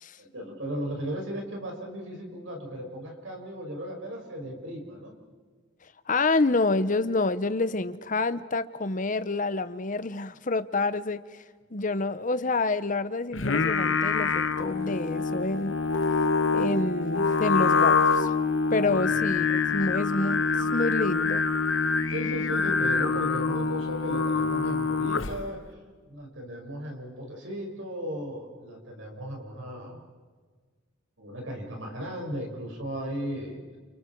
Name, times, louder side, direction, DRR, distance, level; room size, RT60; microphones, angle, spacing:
voice 1, 0.2-5.1 18.8-19.2 22.1-25.8 26.1-30.0 31.2-33.6, equal, 80° right, 1 dB, 6.1 m, -36 dB
voice 2, 6.1-11.2 11.7-15.7 16.5-18.3 18.7-20.4 20.7-21.4, left 3 dB, 40° left, 13 dB, 0.9 m, -28 dB
Singing, 13.3-25.5, left 4 dB, 80° left, 1.1 m, -25 dB
29.5 x 29.0 x 4.7 m, 1.6 s
head